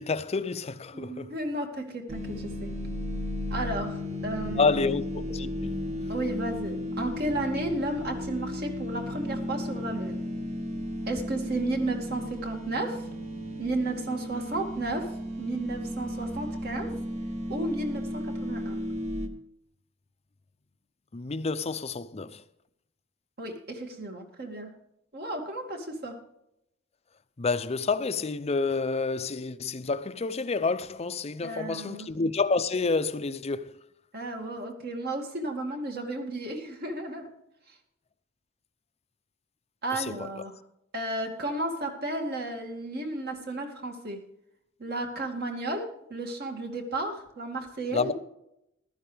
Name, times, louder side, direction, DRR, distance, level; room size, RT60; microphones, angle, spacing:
voice 1, 0.0-1.3 4.6-5.8 21.1-22.4 27.4-33.7 47.9-48.1, left 4 dB, 30° left, 0.6 m, -29 dB
voice 2, 0.9-2.7 3.5-4.9 6.1-10.2 11.1-13.1 13.6-15.1 15.4-17.0 17.5-18.8 23.4-24.7 25.1-26.2 31.4-32.1 34.1-37.3 39.8-40.6 40.9-44.2 44.8-48.1, right 2 dB, 55° right, 2.3 m, -33 dB
sound 1, 2.1-19.3, equal, 35° right, 1.2 m, -34 dB
14.5 x 12.0 x 3.4 m
head